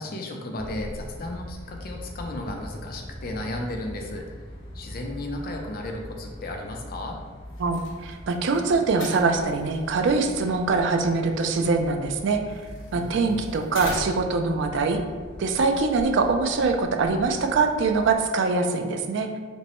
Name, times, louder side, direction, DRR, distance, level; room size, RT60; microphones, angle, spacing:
voice 1, 0.0-4.4 4.7-7.2 12.9-13.4, left 1 dB, 45° left, 2 dB, 0.5 m, -34 dB
sound 1, 0.6-18.2, equal, 25° left, 1.0 m, -42 dB
sound 2, 7.5-14.4, left 1 dB, 70° left, 0.9 m, -43 dB
voice 2, 7.6-12.4 12.9-15.0 15.4-19.4, right 4 dB, 60° right, 5 dB, 0.4 m, -23 dB
5.1 x 2.0 x 3.0 m, 1.5 s
head